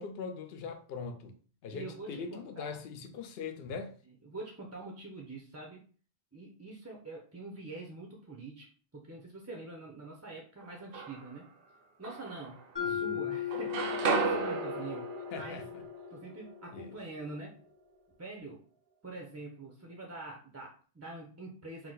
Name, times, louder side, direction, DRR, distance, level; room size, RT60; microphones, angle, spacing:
voice 1, 0.0-1.4 1.6-4.0 12.8-13.3 15.3-15.8 16.7-17.0, left 5 dB, 65° left, 0.8 m, -41 dB
voice 2, 1.7-2.8 4.1-5.8 6.3-11.4 12.0-15.6 16.1-17.6 18.2-18.6 19.0-21.9, right 3 dB, 20° right, 0.4 m, -45 dB
sound 1, 10.6-11.5 12.0-13.1 13.3-17.3, right 4 dB, 60° right, 0.8 m, -35 dB
Mallet percussion, 12.8-16.8, left 10 dB, 25° left, 0.6 m, -38 dB
4.6 x 2.1 x 3.9 m
omnidirectional pair, 1.2 m